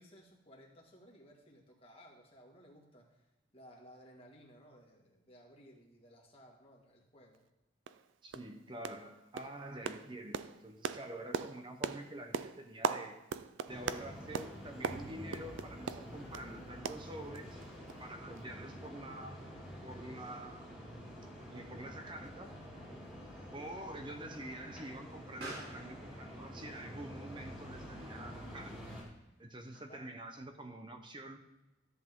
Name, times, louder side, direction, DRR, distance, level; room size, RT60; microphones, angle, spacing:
voice 1, 0.0-3.3 3.5-7.4 29.9-30.1, equal, 30° left, -1 dB, 1.9 m, -58 dB
sound 1, 7.3-7.4 7.9-8.0 8.3-8.5 8.8-9.1 9.4-16.5 16.9-17.6 17.9-18.0 18.4-18.5, right 6 dB, 80° right, 0.4 m, -40 dB
voice 2, 8.2-13.2 13.7-17.6 18.0-19.5 19.8-21.0 21.5-22.5 23.5-28.7 29.4-31.4, right 1 dB, 25° right, 6 dB, 0.8 m, -47 dB
sound 2, 13.7-29.0, equal, 5° right, 3.3 m, -48 dB
Explosion, 25.0-30.2, right 1 dB, 55° right, 3.2 m, -55 dB
13.5 x 7.9 x 3.7 m, 1.0 s
head